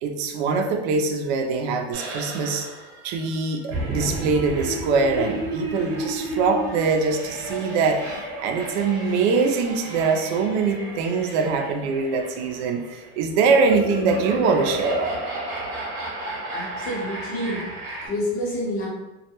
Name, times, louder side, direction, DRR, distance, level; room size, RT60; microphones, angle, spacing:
voice 1, 0.0-2.7 3.0-15.2, right 4 dB, 85° right, 5 dB, 0.5 m, -23 dB
sound 1, 1.9-18.1, right 2 dB, 50° right, 0.8 m, -33 dB
voice 2, 16.5-18.9, equal, 40° left, -4 dB, 0.9 m, -29 dB
2.2 x 2.1 x 2.9 m, 1.1 s
cardioid pair, 150°, 32 cm